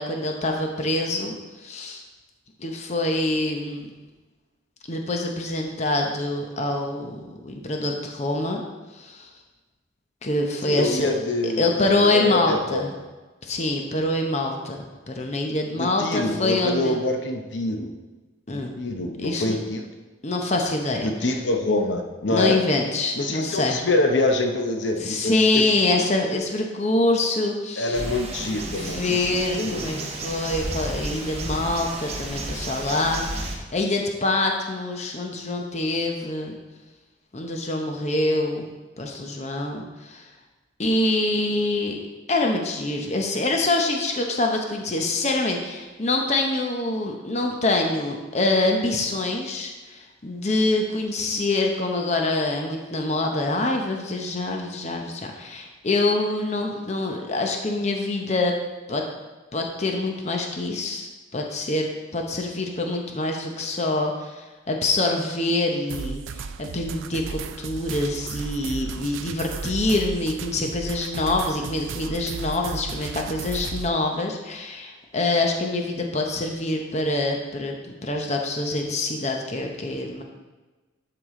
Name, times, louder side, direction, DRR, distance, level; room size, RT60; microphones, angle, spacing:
voice 1, 0.0-1.3 1.6-2.0 2.6-3.8 4.9-8.6 9.0-9.3 10.2-11.1 11.4-12.9 13.4-17.0 18.5-18.7 19.2-19.6 20.2-21.3 22.3-23.8 25.0-28.0 28.7-36.6 37.3-38.7 39.0-40.2 40.8-42.0 42.3-58.5 58.9-59.0 59.5-61.9 62.1-77.8 78.0-80.2, left 2 dB, 35° left, 2 dB, 0.8 m, -25 dB
voice 2, 10.6-12.9 15.8-17.9 18.5-19.9 21.0-22.6 23.1-25.6 25.9-26.0 27.8-30.1, left 2 dB, 65° left, 3 dB, 0.8 m, -25 dB
sound 1, 27.9-33.6, right 2 dB, 30° right, 1.0 m, -32 dB
sound 2, 65.9-73.9, right 5 dB, 85° right, 0.4 m, -35 dB
12.0 x 4.8 x 3.7 m, 1.2 s
head